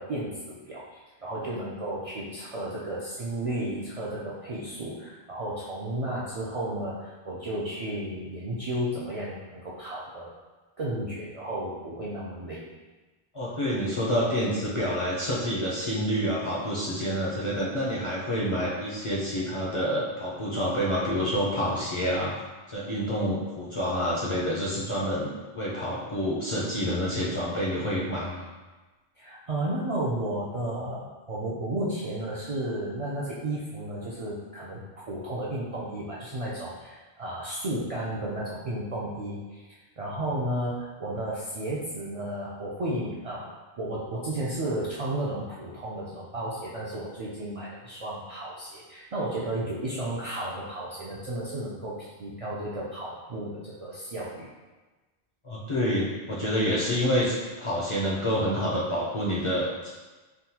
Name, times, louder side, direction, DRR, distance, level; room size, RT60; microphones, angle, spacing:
voice 1, 0.0-10.3 10.8-12.6 29.2-34.8 35.1-39.7 40.0-43.5 43.8-54.5, right 1 dB, 55° right, -7 dB, 0.4 m, -33 dB
voice 2, 13.3-22.3 22.7-25.3 25.5-28.4 55.4-59.9, equal, 45° left, -6 dB, 0.4 m, -28 dB
3.5 x 2.2 x 2.8 m, 1.2 s
omnidirectional pair, 1.0 m